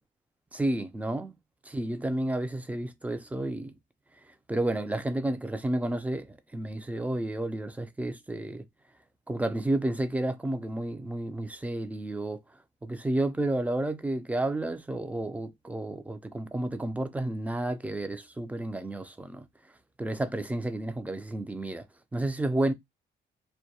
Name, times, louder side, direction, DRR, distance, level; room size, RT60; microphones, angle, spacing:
voice 1, 0.5-1.4 1.7-3.7 4.5-8.6 9.3-12.4 12.8-19.5 20.0-21.8 22.1-22.7, right 1 dB, 5° right, 0.4 m, -31 dB
2.2 x 2.1 x 2.7 m
cardioid pair, 90°, 20 cm